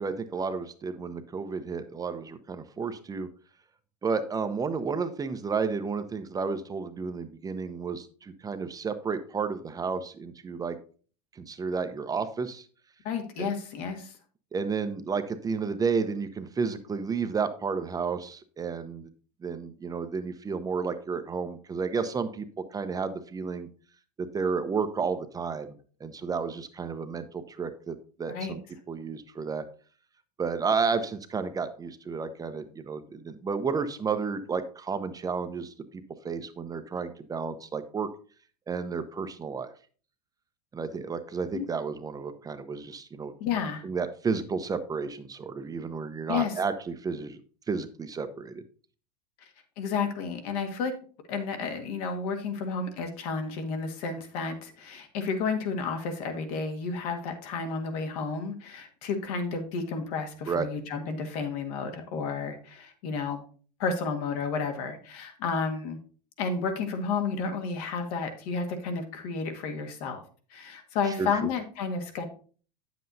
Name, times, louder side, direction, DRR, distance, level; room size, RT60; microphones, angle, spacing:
voice 1, 0.0-3.3 4.0-10.8 11.3-12.7 13.4-13.5 14.5-19.1 19.4-22.5 22.7-23.7 24.2-28.6 28.9-29.7 30.4-35.7 36.2-38.1 38.7-39.7 40.7-43.3 43.8-47.4 47.7-48.6 60.5-60.7 71.2-71.3, right 5 dB, 15° right, 9 dB, 0.7 m, -32 dB
voice 2, 13.0-14.2 28.3-28.6 41.5-41.7 43.4-43.8 46.3-46.5 49.8-50.9 51.3-63.4 63.8-66.0 66.4-70.2 70.5-72.2, left 5 dB, 65° left, 5 dB, 1.7 m, -31 dB
9.1 x 7.8 x 2.7 m, 0.41 s
hypercardioid pair, 115°, 21 cm